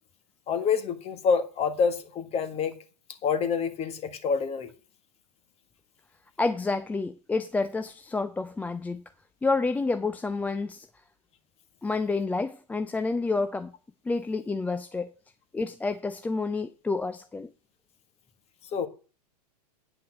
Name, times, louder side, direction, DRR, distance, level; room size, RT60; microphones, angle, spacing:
voice 1, 0.5-2.8 3.2-4.7 18.7-18.9, left 6 dB, 30° left, 1.7 m, -27 dB
voice 2, 6.4-9.0 9.4-10.9 11.8-13.7 14.0-15.1 15.5-17.5, left 3 dB, 10° left, 0.5 m, -29 dB
9.3 x 5.6 x 7.5 m
hypercardioid pair, 110°, 21 cm